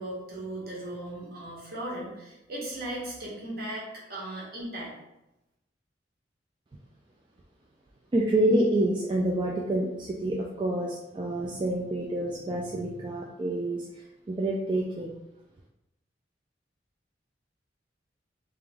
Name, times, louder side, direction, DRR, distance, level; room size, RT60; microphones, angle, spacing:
voice 1, 0.0-5.0, right 1 dB, 55° right, -4 dB, 1.2 m, -37 dB
voice 2, 8.1-13.9 14.3-15.1, right 1 dB, 25° right, -2 dB, 0.3 m, -27 dB
3.4 x 2.9 x 3.4 m, 0.92 s
head